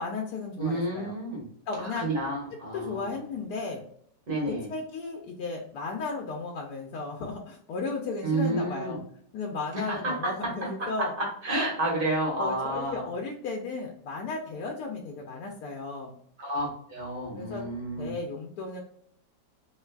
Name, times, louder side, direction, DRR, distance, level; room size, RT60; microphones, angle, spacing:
voice 1, 0.0-1.1 1.7-2.1 2.7-3.8 4.5-9.0 9.3-11.1 11.5-11.7 12.4-16.1 17.3-17.6 18.0-18.8, left 3 dB, 75° left, 0 dB, 1.1 m, -35 dB
voice 2, 0.6-1.4 1.8-3.1 4.3-4.7 8.2-9.0 9.9-10.1 10.4-10.9 11.2-13.0 16.4-18.1, right 1 dB, 35° right, -3 dB, 1.4 m, -30 dB
3.2 x 3.2 x 2.2 m, 0.65 s
omnidirectional pair, 1.8 m